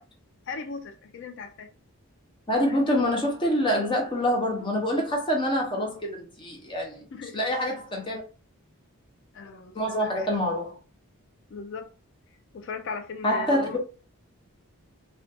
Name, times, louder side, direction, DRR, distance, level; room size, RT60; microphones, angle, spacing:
voice 1, 0.5-1.7 7.1-7.4 9.3-10.4 11.5-11.9 12.5-13.8, left 4 dB, 55° left, 0.3 m, -38 dB
voice 2, 2.5-7.0 7.3-8.2 9.7-10.7 13.2-13.8, equal, 20° left, 0.6 m, -26 dB
2.4 x 2.2 x 2.6 m
head